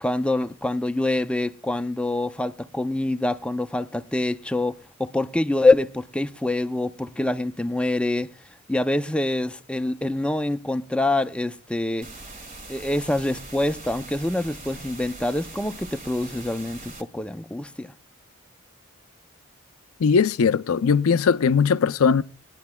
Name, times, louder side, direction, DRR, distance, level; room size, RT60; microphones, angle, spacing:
voice 1, 0.0-8.3 8.7-12.1 12.7-17.9, left 2 dB, 5° left, 0.4 m, -25 dB
sound 1, 12.0-17.0, right 2 dB, 40° right, 1.6 m, -41 dB
voice 2, 20.0-22.2, left 6 dB, 75° left, 0.5 m, -19 dB
20.0 x 10.5 x 2.2 m
head